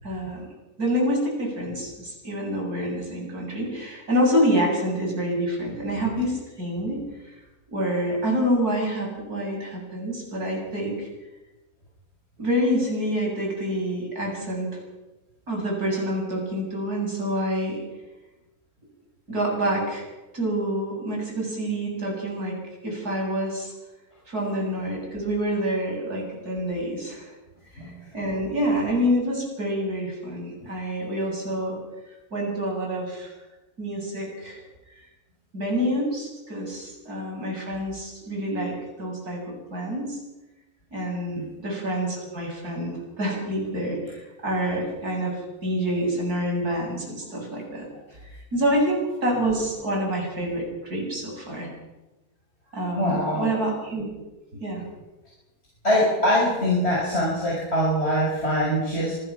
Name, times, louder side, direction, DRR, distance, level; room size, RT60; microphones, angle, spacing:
voice 1, 0.0-0.4 0.8-7.4 7.7-11.1 12.4-14.7 15.5-17.8 19.3-20.1 20.3-22.6 22.8-23.7 24.3-27.3 27.8-31.8 32.3-33.3 33.8-34.6 35.5-39.4 39.7-40.2 40.9-47.9 48.3-51.7 52.7-54.1 54.6-54.8, equal, 85° right, 0 dB, 8.0 m, -27 dB
voice 2, 27.8-28.1 41.3-41.4 53.0-53.5 55.8-59.1, equal, 45° left, -5 dB, 6.7 m, -23 dB
26.0 x 20.5 x 6.0 m, 1.1 s
omnidirectional pair, 1.6 m